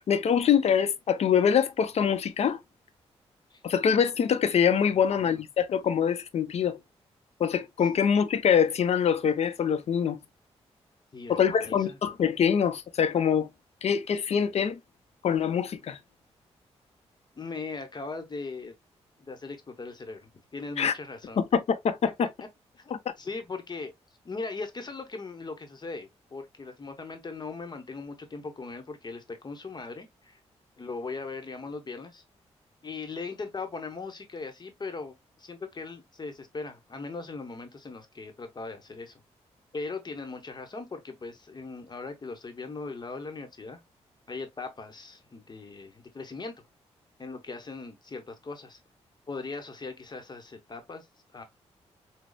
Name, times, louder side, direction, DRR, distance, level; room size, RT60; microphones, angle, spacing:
voice 1, 0.0-2.6 3.6-6.8 7.4-10.2 11.3-13.5 13.8-14.8 15.2-16.0 20.8-20.9 21.4-22.0 22.9-23.0, left 7 dB, 65° left, 0.8 m, -24 dB
voice 2, 4.9-5.4 11.1-12.0 17.4-18.7 19.2-21.4 22.8-23.9 24.2-30.4 30.8-32.2 32.8-39.2 39.7-43.8 44.3-46.5 47.2-48.8 49.3-51.1 51.3-51.4, left 3 dB, 40° left, 1.0 m, -39 dB
6.2 x 2.3 x 2.3 m
cardioid pair, 75°, 12 cm